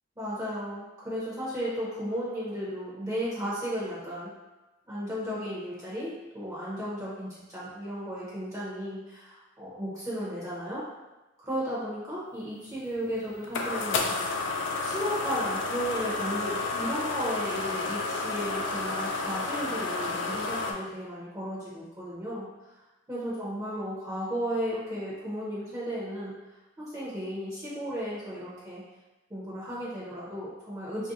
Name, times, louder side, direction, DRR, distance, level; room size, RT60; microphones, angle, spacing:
voice 1, 0.2-4.3 4.9-10.8 11.4-14.1 14.8-22.5 23.1-26.3 26.8-28.8 29.3-31.1, equal, 15° right, -8 dB, 0.7 m, -34 dB
sound 1, 12.8-20.7, left 3 dB, 60° left, 0.3 m, -31 dB
2.5 x 2.1 x 3.7 m, 1.1 s
head